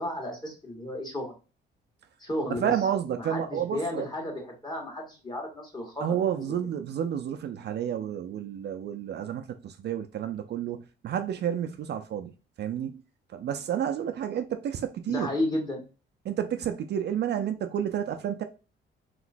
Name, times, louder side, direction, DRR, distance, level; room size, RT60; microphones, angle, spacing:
voice 1, 0.0-1.3 2.2-2.8 3.2-6.0 6.3-6.5 15.1-15.9, left 1 dB, 20° left, 1.5 m, -33 dB
voice 2, 2.5-4.1 6.0-12.3 12.6-13.0 13.3-15.3 16.2-18.4, right 9 dB, 60° right, 0.5 m, -30 dB
3.2 x 2.9 x 2.5 m
cardioid pair, 90°, 20 cm